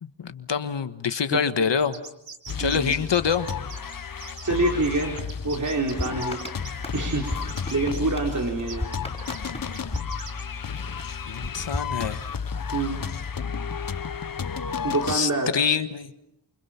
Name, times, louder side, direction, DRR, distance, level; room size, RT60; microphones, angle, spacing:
voice 1, 0.0-2.0 2.6-3.5 11.2-12.2 15.1-16.1, left 6 dB, 70° left, 10 dB, 1.5 m, -25 dB
sound 1, 1.8-8.0 8.7-10.4, right 5 dB, 75° right, 3.4 m, -42 dB
sound 2, 2.5-15.2, left 6 dB, 50° left, 1.1 m, -33 dB
voice 2, 2.6-2.9 4.4-6.4 6.9-7.3 7.7-8.9 12.7-13.1 14.8-15.5, right 2 dB, 40° right, 1 dB, 4.1 m, -26 dB
sound 3, 6.0-10.8 11.4-12.6, left 1 dB, 15° left, 6.7 m, -36 dB
29.0 x 28.5 x 5.8 m, 0.82 s
wide cardioid pair, 85°, 45 cm